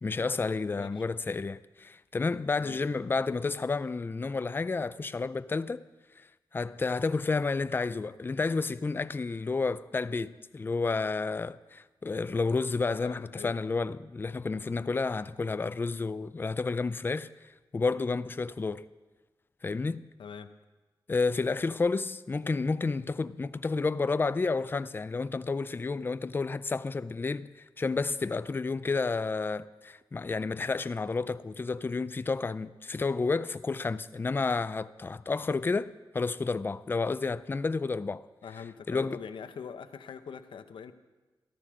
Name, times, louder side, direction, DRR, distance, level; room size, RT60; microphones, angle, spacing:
voice 1, 0.0-5.8 6.2-6.3 6.5-17.3 17.7-18.8 19.6-20.1 21.1-38.3 38.9-39.2, left 4 dB, 25° left, 0.4 m, -31 dB
voice 2, 0.7-1.0 2.6-3.0 13.0-13.5 20.2-20.5 38.4-40.9, left 6 dB, 90° left, 0.8 m, -43 dB
14.0 x 13.5 x 6.2 m
wide cardioid pair, 125°, 8 cm